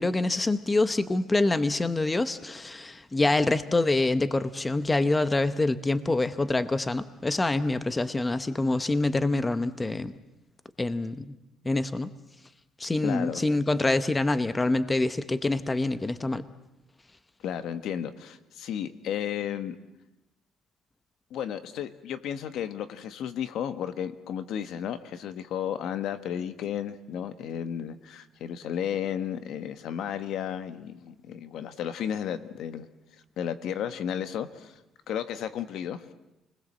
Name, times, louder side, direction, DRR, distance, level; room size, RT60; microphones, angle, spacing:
voice 1, 0.0-10.1 10.8-11.3 11.6-12.1 12.8-16.4, left 2 dB, 15° left, 12 dB, 0.9 m, -26 dB
voice 2, 13.0-13.4 17.4-19.8 21.3-32.9 33.4-34.7 35.1-36.0, left 9 dB, 70° left, 11 dB, 1.4 m, -33 dB
29.0 x 20.5 x 7.6 m, 0.92 s
cardioid pair, 120°, 0 cm